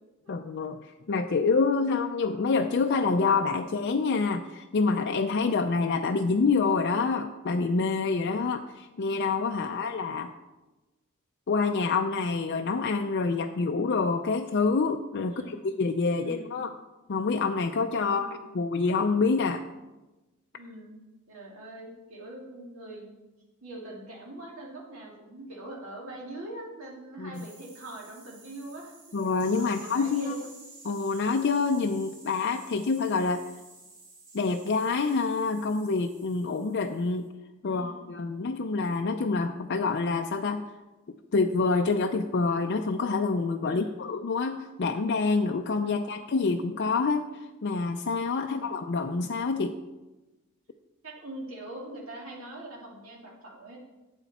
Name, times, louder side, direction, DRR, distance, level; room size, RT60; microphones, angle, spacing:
voice 1, 0.3-10.3 11.5-16.7 17.1-19.6 27.2-27.4 29.1-30.4 30.8-33.4 34.3-37.3 37.6-40.6 41.3-49.8, left 4 dB, 50° left, 4 dB, 0.5 m, -27 dB
voice 2, 9.5-9.9 15.3-15.6 16.2-16.5 18.0-18.4 20.5-20.9 21.3-23.2 23.6-29.0 29.6-30.5 37.6-38.1 43.7-44.0 45.8-46.2 48.4-48.7 51.0-53.8, right 1 dB, 70° right, -2 dB, 2.5 m, -43 dB
sound 1, 27.3-37.2, right 3 dB, 40° right, 3.1 m, -51 dB
12.5 x 8.1 x 4.2 m, 1.1 s
head